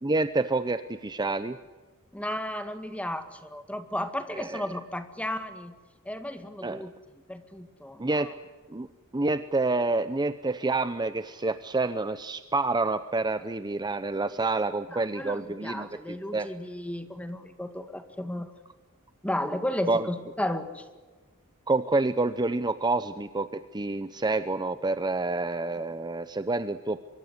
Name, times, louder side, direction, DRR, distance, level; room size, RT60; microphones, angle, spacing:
voice 1, 0.0-1.6 4.4-4.6 6.6-6.8 8.0-8.3 8.7-8.9 9.1-15.9 16.3-16.5 19.9-20.1 21.7-27.0, right 3 dB, 20° right, 11 dB, 0.7 m, -28 dB
voice 2, 2.1-5.7 6.1-8.3 14.9-18.5 19.2-20.9, left 1 dB, 5° left, 8 dB, 1.9 m, -34 dB
25.0 x 23.0 x 8.2 m, 1.3 s
head